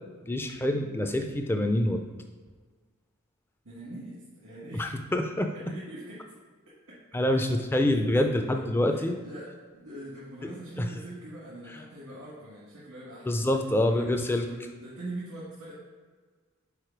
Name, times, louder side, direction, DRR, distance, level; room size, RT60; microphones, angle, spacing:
voice 1, 0.3-2.0 4.8-5.5 7.1-9.2 10.8-10.9 13.3-14.5, left 1 dB, 10° left, 5 dB, 0.3 m, -26 dB
voice 2, 3.6-4.9 5.5-6.2 6.9-7.0 8.1-13.4 13.8-15.7, right 1 dB, 90° right, -7 dB, 1.5 m, -42 dB
4.9 x 4.2 x 4.5 m, 1.4 s
head